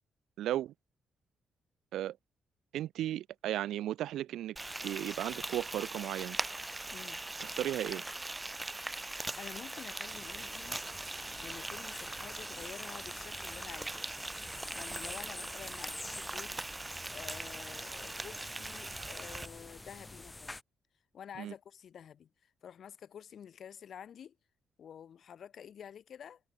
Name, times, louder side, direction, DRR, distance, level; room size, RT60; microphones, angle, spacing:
voice 1, 0.4-0.7 1.9-2.2 2.7-4.5 4.8-6.4 7.4-8.0 21.4-21.5, right 13 dB, 85° right, 1.6 m, -35 dB
Frying (food), 4.6-19.5, right 2 dB, 15° right, 2.1 m, -41 dB
voice 2, 6.9-7.2 9.4-10.8 11.4-14.1 14.7-16.6 17.1-20.6 21.1-22.3 22.6-24.4 24.8-26.4, left 8 dB, 65° left, 7.2 m, -49 dB
sound 1, 10.1-20.6, left 2 dB, 15° left, 3.0 m, -48 dB
cardioid pair, 85°, 0 cm